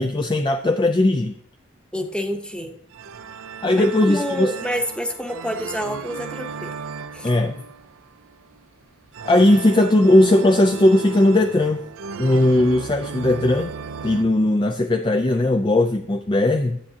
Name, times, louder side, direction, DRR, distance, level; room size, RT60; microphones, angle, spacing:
voice 1, 0.0-1.4 3.6-4.5 7.2-7.6 9.2-11.8 12.2-13.7 14.0-16.8, left 1 dB, 20° left, 6 dB, 0.4 m, -18 dB
voice 2, 1.9-2.7 3.8-6.7 7.1-7.3, equal, 5° left, 4 dB, 0.9 m, -28 dB
sound 1, 2.9-14.2, right 5 dB, 80° right, 0.6 m, -35 dB
13.0 x 8.6 x 2.8 m, 0.69 s
head